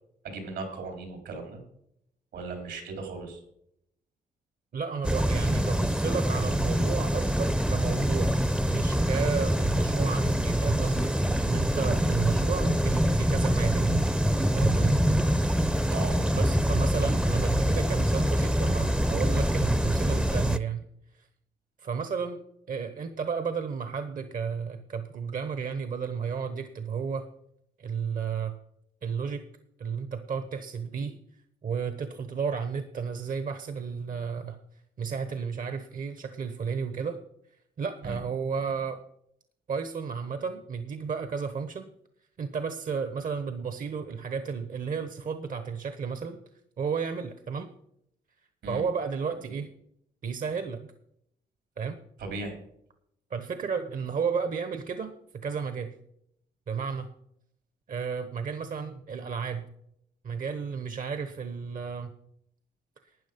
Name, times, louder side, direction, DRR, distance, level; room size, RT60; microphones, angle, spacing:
voice 1, 0.2-1.6 2.3-3.4 12.0-12.2 15.9-16.3 38.0-38.2 48.6-48.8 52.2-52.6, right 3 dB, 80° right, 4 dB, 4.1 m, -37 dB
voice 2, 4.7-8.4 8.7-14.1 14.5-15.0 16.4-20.9 21.1-21.3 21.8-22.4 22.7-27.3 27.8-28.6 29.0-29.4 29.8-31.2 31.6-37.2 37.5-39.0 39.7-41.9 42.4-46.4 46.8-47.7 48.7-49.7 50.2-50.9 51.8-52.0 53.3-56.0 56.7-57.1 57.9-59.7 60.2-62.1, right 6 dB, 50° right, 9 dB, 1.1 m, -32 dB
sound 1, 5.0-20.6, equal, 5° right, 0.7 m, -25 dB
12.5 x 9.1 x 5.3 m, 0.74 s
cardioid pair, 80°, 18 cm